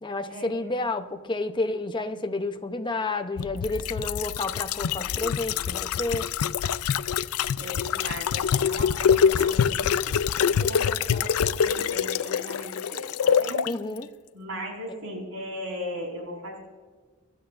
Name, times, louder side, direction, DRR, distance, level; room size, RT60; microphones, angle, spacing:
voice 1, 0.0-6.3 13.6-14.1 14.9-15.1, left 2 dB, 20° left, 7 dB, 0.7 m, -30 dB
sound 1, 3.4-13.7 14.0-14.1, left 7 dB, 80° left, 0.4 m, -25 dB
voice 2, 7.6-13.7 14.3-16.6, equal, 70° right, 0 dB, 4.9 m, -38 dB
24.0 x 13.0 x 2.6 m, 1.4 s
head